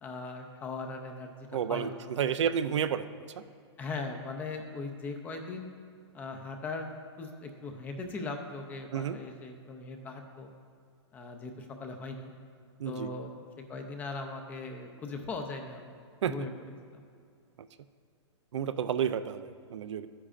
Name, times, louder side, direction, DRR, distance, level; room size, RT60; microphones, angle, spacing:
voice 1, 0.0-1.9 2.2-2.3 3.8-5.7 6.1-10.5 11.1-12.3 12.8-15.9 16.3-16.5 16.9-17.0, left 3 dB, 10° left, 4 dB, 0.4 m, -39 dB
voice 2, 1.5-3.1 3.4-3.5 8.9-9.2 12.8-13.1 16.2-16.3 18.5-20.1, right 8 dB, 80° right, 12 dB, 0.5 m, -31 dB
11.5 x 9.9 x 2.5 m, 2.3 s
hypercardioid pair, 160°, 15 cm